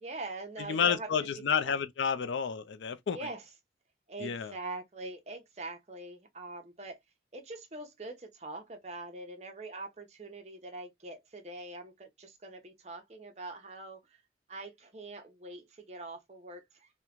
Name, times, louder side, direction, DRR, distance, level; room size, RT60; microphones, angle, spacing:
voice 1, 0.0-1.8 3.1-3.4 4.1-7.0 7.3-14.0 14.5-16.9, right 2 dB, 35° right, 0.6 m, -43 dB
voice 2, 0.6-3.3 4.2-4.5, left 7 dB, 85° left, 0.4 m, -30 dB
3.0 x 2.1 x 2.3 m
head